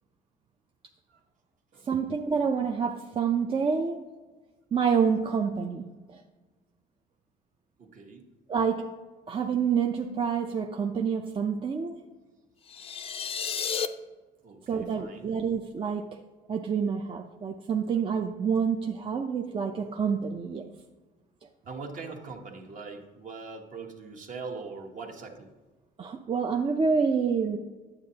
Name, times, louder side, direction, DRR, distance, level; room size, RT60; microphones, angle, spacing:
voice 1, 1.9-4.0 4.7-6.2 8.5-8.8 9.3-12.0 14.7-16.1 16.5-20.6 26.0-27.6, right 6 dB, 30° right, 2 dB, 0.5 m, -27 dB
voice 2, 7.8-8.2 14.4-15.4 21.7-25.5, right 4 dB, 50° right, 3 dB, 1.2 m, -42 dB
sound 1, 12.7-13.9, left 7 dB, 35° left, 0.4 m, -32 dB
9.7 x 7.7 x 2.8 m, 1.3 s
cardioid pair, 110°, 17 cm